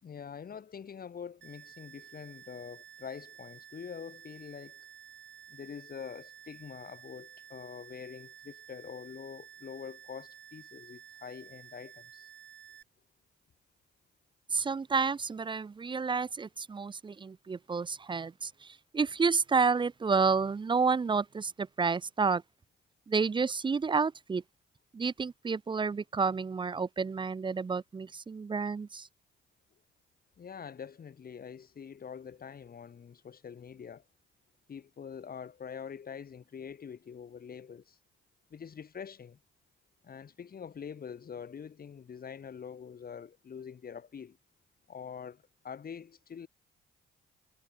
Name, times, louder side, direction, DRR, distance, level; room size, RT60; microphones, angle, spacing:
voice 1, 0.0-4.9 5.5-12.3 30.4-34.0 34.7-38.0 38.5-39.4 40.0-44.4 44.9-46.5, left 7 dB, 50° left, 6.0 m, -45 dB
sound 1, 1.4-12.8, right 10 dB, 65° right, 5.6 m, -52 dB
voice 2, 14.5-22.4 23.1-24.4 24.9-29.1, right 5 dB, 25° right, 0.6 m, -30 dB
cardioid pair, 90°, 20 cm